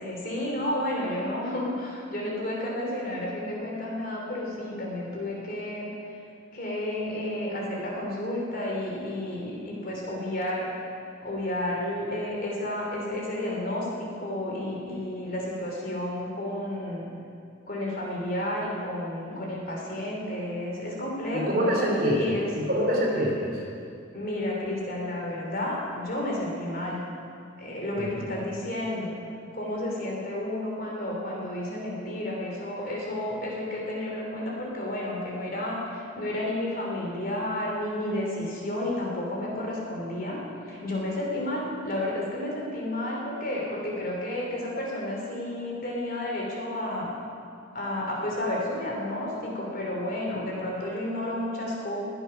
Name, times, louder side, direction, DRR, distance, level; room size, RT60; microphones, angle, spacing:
voice 1, 0.0-5.9 6.5-10.7 11.2-17.1 17.7-22.5 24.1-27.0 27.6-29.2 29.5-40.4 40.6-47.1 47.7-52.0, left 1 dB, 45° left, -2 dB, 3.0 m, -31 dB
voice 2, 21.3-23.6 28.0-28.1, equal, 45° right, -3 dB, 3.2 m, -26 dB
21.5 x 8.1 x 5.7 m, 2.4 s
head